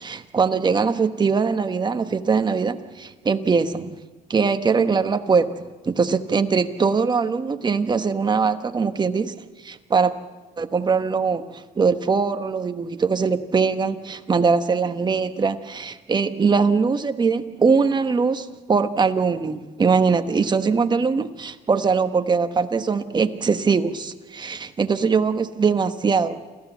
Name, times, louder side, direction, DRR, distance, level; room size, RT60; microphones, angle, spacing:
voice 1, 0.0-4.0 4.3-10.1 10.6-26.4, right 5 dB, 25° right, 9 dB, 1.2 m, -22 dB
28.0 x 15.0 x 7.2 m, 1.2 s
cardioid pair, 110°, 17 cm